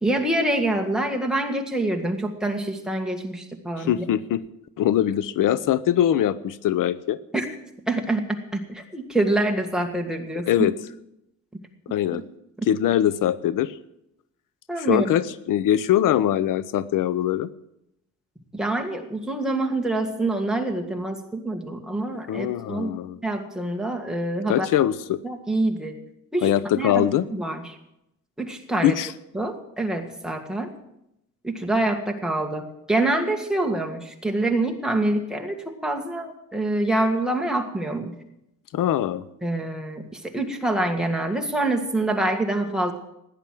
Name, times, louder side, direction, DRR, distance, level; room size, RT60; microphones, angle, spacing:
voice 1, 0.0-4.0 7.3-7.5 7.9-10.5 14.7-15.1 18.5-22.9 23.2-24.7 25.2-26.0 26.3-26.5 26.8-27.8 28.4-29.0 29.3-30.7 31.4-38.1 39.4-42.9, right 2 dB, ahead, 1 dB, 1.8 m, -26 dB
voice 2, 3.8-4.4 4.8-7.2 10.5-10.7 11.9-12.2 12.7-13.8 14.8-17.5 22.3-23.2 24.5-25.2 26.4-27.3 28.8-29.1 38.7-39.2, left 11 dB, 80° left, 17 dB, 0.7 m, -22 dB
16.5 x 10.5 x 7.6 m, 0.84 s
cardioid pair, 155°, 32 cm